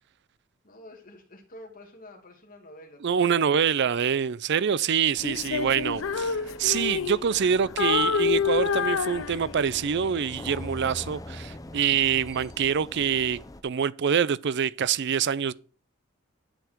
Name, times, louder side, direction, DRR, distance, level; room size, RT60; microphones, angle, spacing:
voice 1, 0.6-4.2, left 1 dB, 45° left, 2.5 m, -49 dB
voice 2, 3.0-15.5, right 7 dB, 60° right, 0.5 m, -25 dB
sound 1, 5.1-13.6, left 1 dB, 20° left, 0.7 m, -43 dB
Female singing, 5.2-7.5 7.8-9.8, left 6 dB, 75° left, 0.6 m, -27 dB
11.5 x 7.0 x 4.5 m
head